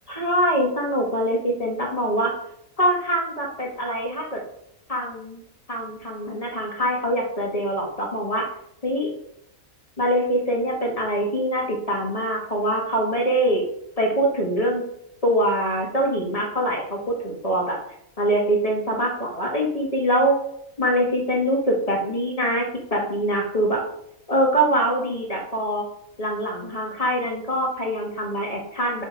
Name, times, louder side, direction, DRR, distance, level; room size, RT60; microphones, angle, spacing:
voice 1, 0.1-2.3 2.8-4.4 4.9-5.4 5.7-8.5 8.8-9.1 10.0-13.7 14.0-14.8 15.2-17.8 18.2-20.4 20.8-23.8 24.3-25.8 26.2-29.0, right 1 dB, 25° left, -1 dB, 1.9 m, -23 dB
7.5 x 4.2 x 5.3 m, 0.77 s
omnidirectional pair, 1.5 m